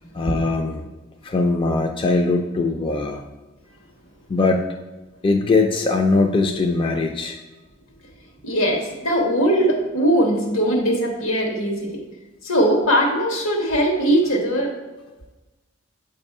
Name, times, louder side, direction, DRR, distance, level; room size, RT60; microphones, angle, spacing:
voice 1, 0.1-0.9 1.2-3.2 4.3-4.6 5.2-7.4, left 3 dB, 25° left, 3 dB, 0.3 m, -21 dB
voice 2, 8.4-12.0 12.4-14.8, equal, 85° left, 1 dB, 1.3 m, -20 dB
7.2 x 2.6 x 5.3 m, 1.1 s
head